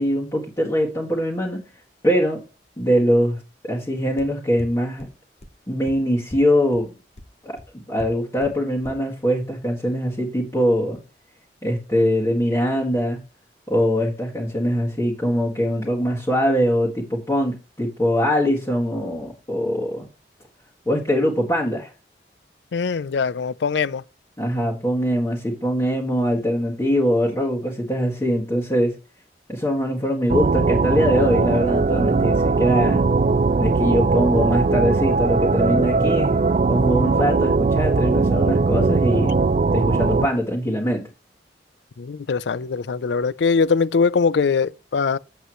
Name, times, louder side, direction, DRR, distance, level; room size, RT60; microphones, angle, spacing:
voice 1, 0.0-1.6 2.0-2.4 2.8-3.4 3.6-5.1 5.7-6.9 7.4-7.6 7.9-11.0 11.6-13.2 13.7-20.1 20.9-21.9 24.4-28.9 29.5-33.0 33.6-36.3 36.7-39.5 39.7-41.0, equal, 20° left, 1.8 m, -22 dB
sound 1, 4.2-4.3 4.6-4.7 5.0-5.1 5.4-5.5 5.9-6.0 6.3-6.4 6.7-6.8 7.2-7.3 7.6-7.7 8.0-8.1 8.4-8.5 8.8-8.9, left 1 dB, 40° left, 1.1 m, -37 dB
voice 2, 22.7-24.0 42.0-45.2, left 5 dB, 85° left, 0.5 m, -21 dB
sound 2, 30.3-40.3, right 3 dB, 40° right, 0.3 m, -19 dB
8.1 x 8.0 x 3.1 m
head